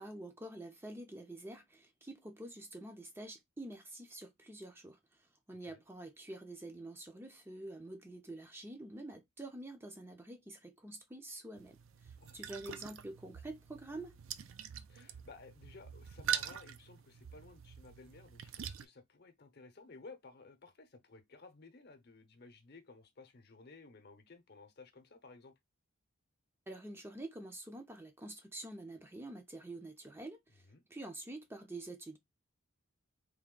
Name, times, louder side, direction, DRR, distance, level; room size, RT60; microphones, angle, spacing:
voice 1, 0.0-14.2 26.7-32.2, right 1 dB, 10° right, 0.5 m, -47 dB
sound 1, 11.6-18.9, right 9 dB, 75° right, 0.5 m, -43 dB
voice 2, 12.2-12.7 14.9-25.5 30.6-30.8, left 3 dB, 50° left, 0.8 m, -56 dB
3.4 x 2.7 x 3.7 m
head